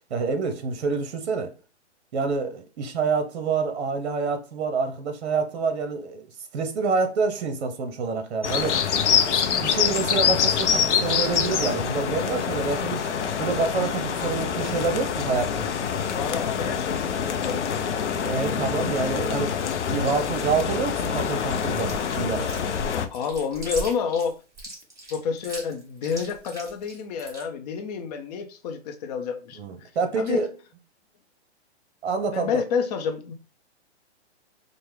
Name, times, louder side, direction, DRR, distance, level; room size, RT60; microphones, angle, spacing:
voice 1, 0.1-1.5 2.1-6.3 6.5-8.8 9.5-13.1 13.4-15.7 18.2-19.6 19.9-22.5 29.6-30.5 32.0-32.6, right 4 dB, 65° right, 0.8 m, -27 dB
sound 1, 8.4-23.1, left 7 dB, 85° left, 0.6 m, -25 dB
voice 2, 16.0-17.8 22.9-24.4 25.1-29.9 30.2-30.5 32.3-33.3, left 6 dB, 35° left, 0.6 m, -29 dB
Chewing mastication, 21.9-27.4, right 2 dB, 10° right, 1.7 m, -38 dB
4.8 x 2.1 x 3.2 m
hypercardioid pair, 135°, 34 cm